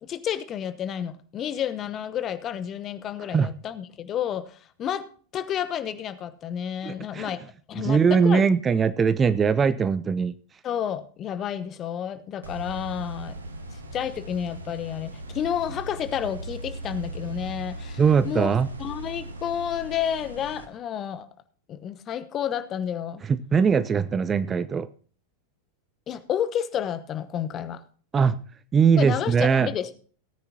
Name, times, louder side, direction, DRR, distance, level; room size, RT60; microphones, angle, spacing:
voice 1, 0.0-7.4 7.7-8.5 10.6-13.4 13.9-21.3 21.7-23.2 26.1-27.8 29.0-29.9, left 9 dB, 30° left, 13 dB, 1.0 m, -30 dB
voice 2, 6.8-7.3 7.8-10.3 18.0-18.7 23.3-24.9 28.1-28.3 28.7-29.7, right 6 dB, 20° right, 14 dB, 0.5 m, -21 dB
sound 1, 12.4-20.6, right 1 dB, 75° right, 1.6 m, -38 dB
18.0 x 9.7 x 2.8 m, 0.42 s
figure-of-eight pair, 90°, 0 cm